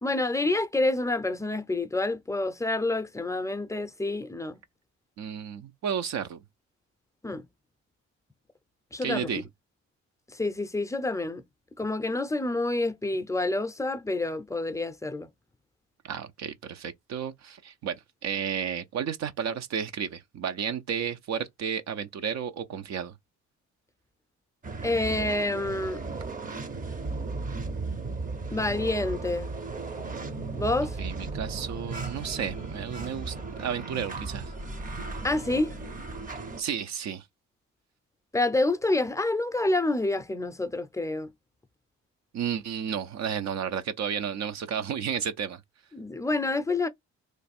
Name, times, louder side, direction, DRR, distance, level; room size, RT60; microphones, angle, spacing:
voice 1, 0.0-4.6 7.2-7.4 8.9-9.4 10.3-11.4 11.8-15.3 24.8-26.0 28.5-29.6 30.6-31.0 35.2-35.8 38.3-41.3 45.9-46.9, left 2 dB, 10° left, 0.5 m, -28 dB
voice 2, 5.2-6.4 9.0-9.4 16.0-23.1 31.0-34.5 36.6-37.3 42.3-45.6, right 8 dB, 60° right, 0.6 m, -32 dB
sound 1, 24.6-36.6, right 3 dB, 30° right, 0.7 m, -35 dB
3.2 x 2.3 x 4.2 m
cardioid pair, 90°, 30 cm